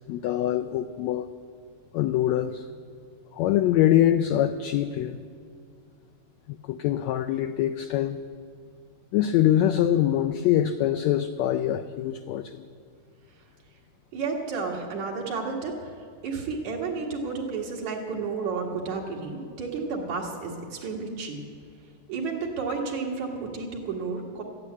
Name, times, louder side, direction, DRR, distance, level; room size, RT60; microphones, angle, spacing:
voice 1, 0.1-1.3 1.9-2.6 3.4-5.2 6.7-8.2 9.1-12.6, left 11 dB, 85° left, 9 dB, 1.5 m, -24 dB
voice 2, 14.1-15.9 16.2-21.4 22.1-24.4, right 4 dB, 65° right, -2 dB, 3.3 m, -31 dB
14.0 x 10.0 x 9.5 m, 2.2 s
omnidirectional pair, 3.6 m